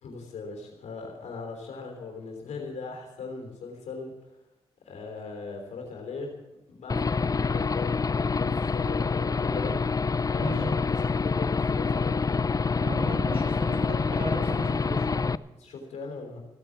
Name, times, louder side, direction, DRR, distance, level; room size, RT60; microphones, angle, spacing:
voice 1, 0.0-4.1 4.8-6.3 6.7-9.8 10.3-10.8 11.1-12.5 15.5-16.4, left 4 dB, 85° left, 2 dB, 3.4 m, -39 dB
Aircraft / Engine, 6.9-15.4, left 4 dB, 30° left, 0.5 m, -26 dB
voice 2, 12.8-15.2, equal, 60° right, 0 dB, 6.3 m, -35 dB
16.0 x 8.9 x 7.3 m, 0.95 s
cardioid pair, 55°, 11 cm